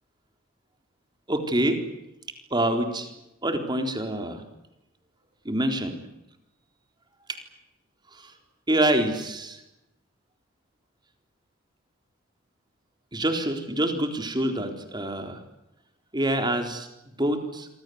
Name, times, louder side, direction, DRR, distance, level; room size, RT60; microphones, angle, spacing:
voice 1, 1.3-1.8 2.5-3.1 3.4-4.4 5.5-6.0 7.3-7.4 8.2-8.3 8.7-9.6 13.1-15.4 16.1-16.9 17.2-17.7, right 1 dB, 20° right, 6 dB, 3.9 m, -26 dB
27.0 x 25.5 x 8.0 m, 0.93 s
head